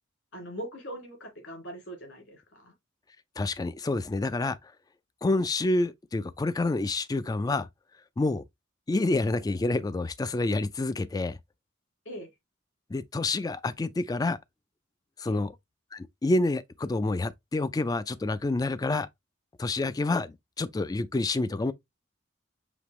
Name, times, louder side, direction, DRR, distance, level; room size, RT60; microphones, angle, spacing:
voice 1, 0.3-2.7 12.0-12.3 15.3-15.4, right 1 dB, 65° left, 2.7 m, -41 dB
voice 2, 3.4-4.7 5.2-7.7 8.2-8.4 8.9-11.4 12.9-14.4 15.2-15.5 15.9-19.1 19.6-21.7, left 2 dB, 20° left, 0.3 m, -28 dB
5.2 x 2.9 x 3.0 m
head